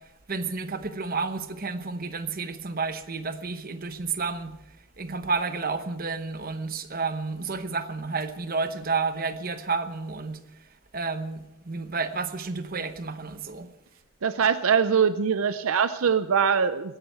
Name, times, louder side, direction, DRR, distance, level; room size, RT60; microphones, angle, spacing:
voice 1, 0.3-4.5 5.0-10.4 10.9-13.7, right 4 dB, 40° right, 1.0 m, -31 dB
voice 2, 14.2-17.0, right 7 dB, 70° right, 0.5 m, -23 dB
18.0 x 13.5 x 4.6 m
head